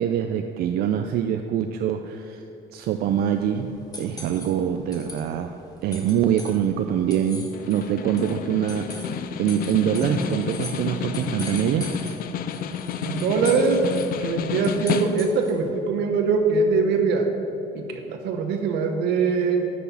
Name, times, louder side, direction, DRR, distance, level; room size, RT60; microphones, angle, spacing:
voice 1, 0.0-2.4 2.7-3.7 4.0-5.5 5.8-12.0, right 9 dB, 65° right, 6 dB, 0.4 m, -24 dB
sound 1, 2.9-15.7, left 3 dB, 20° left, 1.4 m, -42 dB
Snare drum, 7.5-15.5, left 7 dB, 60° left, 0.5 m, -30 dB
voice 2, 13.0-13.9 14.2-17.3 17.7-19.7, right 4 dB, 85° right, 5 dB, 1.0 m, -22 dB
8.3 x 6.2 x 5.5 m, 3.0 s
cardioid pair, 110°, 17 cm